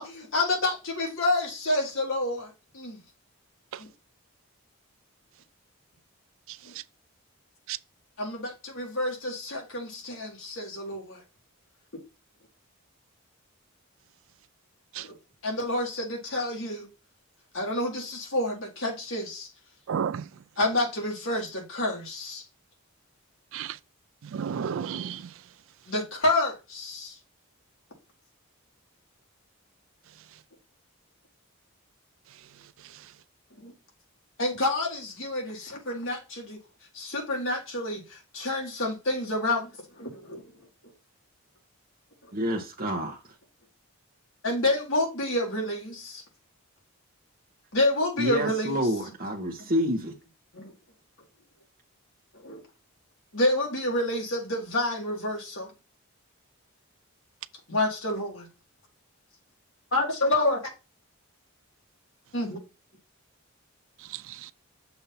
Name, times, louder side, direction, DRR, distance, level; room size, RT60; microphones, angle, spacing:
voice 1, 0.0-3.0 3.8-3.9 6.6-6.7 8.2-11.2 15.0-15.1 15.4-16.9 17.5-19.5 20.6-22.4 25.9-27.2 33.6-33.7 34.4-36.6 36.9-39.7 40.0-40.5 44.4-46.2 47.7-48.8 50.5-50.7 52.4-52.6 53.3-55.7 57.7-58.5 59.9-60.7 62.3-62.6, left 1 dB, 60° left, 2.0 m, -28 dB
voice 2, 19.9-20.2 23.5-23.8 24.3-25.2 64.1-64.5, right 7 dB, 60° right, 0.3 m, -32 dB
voice 3, 42.3-43.2 48.2-50.2, equal, 40° right, 0.9 m, -28 dB
6.9 x 2.7 x 5.7 m
head